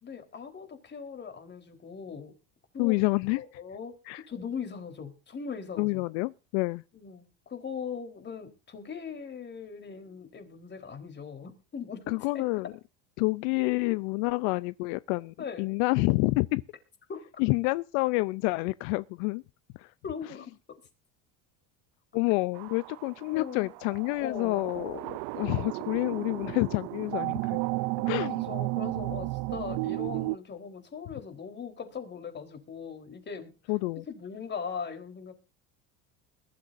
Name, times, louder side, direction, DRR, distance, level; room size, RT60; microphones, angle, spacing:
voice 1, 0.0-2.3 2.7-2.9 3.4-4.0 4.3-6.1 6.9-12.5 15.4-15.8 17.1-17.3 20.0-20.8 23.3-23.7 24.2-24.7 28.1-33.7 34.1-35.3, left 6 dB, 30° left, 4.0 m, -40 dB
voice 2, 2.8-3.4 4.1-4.2 5.8-6.8 12.1-12.7 13.2-16.6 17.4-19.4 19.7-19.9 22.1-27.6 28.1-28.4 33.7-34.0, left 24 dB, 75° left, 0.6 m, -28 dB
sound 1, 22.5-30.4, right 23 dB, 70° right, 0.6 m, -33 dB
21.5 x 12.5 x 2.6 m
supercardioid pair, 120°, 36 cm